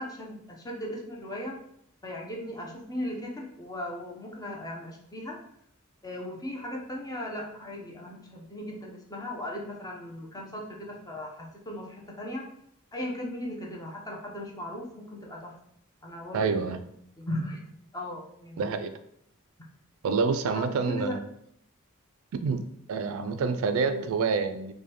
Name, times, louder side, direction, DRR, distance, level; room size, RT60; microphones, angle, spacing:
voice 1, 0.0-1.6 2.0-5.4 6.0-12.4 12.9-15.5 16.0-16.7 17.2-17.6 17.9-18.7 20.5-21.1 23.9-24.1, left 1 dB, 15° left, -1 dB, 0.6 m, -37 dB
voice 2, 16.3-16.8 18.6-18.9 20.0-21.2 22.4-24.7, right 5 dB, 70° right, 9 dB, 0.3 m, -27 dB
4.9 x 2.2 x 2.9 m, 0.72 s
head